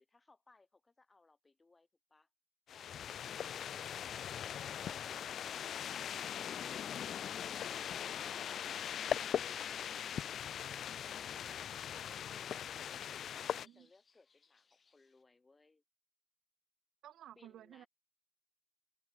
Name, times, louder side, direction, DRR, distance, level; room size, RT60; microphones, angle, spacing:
voice 1, 0.0-2.3 10.6-15.8 17.4-17.9, left 3 dB, 25° left, 3.3 m, -67 dB
sound 1, 2.7-13.7, left 9 dB, 65° left, 0.4 m, -40 dB
sound 2, 10.0-15.2, left 5 dB, 40° left, 5.1 m, -75 dB
voice 2, 13.5-13.9 17.0-17.9, right 12 dB, 75° right, 1.0 m, -55 dB
open air
cardioid pair, 90°, 0 cm